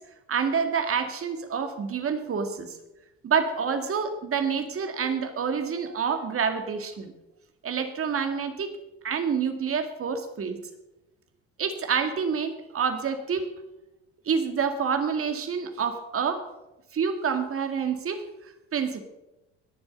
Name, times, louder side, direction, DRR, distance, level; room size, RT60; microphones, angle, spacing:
voice 1, 0.3-2.8 3.2-7.1 7.6-8.7 9.0-10.6 11.6-13.5 14.3-16.5 16.9-18.2 18.7-19.0, right 6 dB, 45° right, 8 dB, 2.0 m, -27 dB
20.0 x 7.1 x 5.3 m, 0.96 s
supercardioid pair, 65°, 30 cm